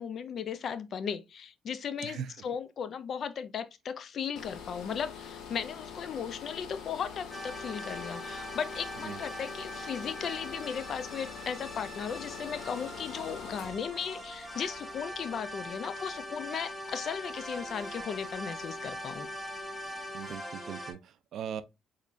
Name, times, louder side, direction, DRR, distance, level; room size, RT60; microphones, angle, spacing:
voice 1, 0.0-19.3, left 7 dB, 45° left, 0.3 m, -36 dB
voice 2, 2.0-2.3 9.0-9.2 20.1-21.6, right 9 dB, 60° right, 0.4 m, -39 dB
sound 1, 4.4-20.4, left 6 dB, 75° left, 0.7 m, -47 dB
sound 2, 7.3-20.9, equal, 5° left, 0.8 m, -42 dB
3.7 x 3.2 x 2.4 m
cardioid pair, 135°, 0 cm